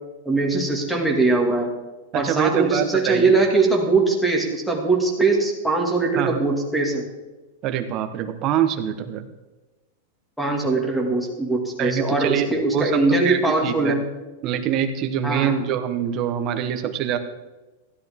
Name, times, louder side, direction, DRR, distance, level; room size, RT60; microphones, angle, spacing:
voice 1, 0.3-1.7 2.1-7.0 10.4-14.0 15.2-15.6, right 3 dB, ahead, 2 dB, 2.0 m, -21 dB
voice 2, 2.1-3.3 6.2-6.4 7.6-9.3 11.8-12.5 12.7-14.0 14.4-17.2, right 9 dB, 30° right, 7 dB, 1.1 m, -24 dB
15.5 x 10.5 x 3.6 m, 1.1 s
supercardioid pair, 160°, 0 cm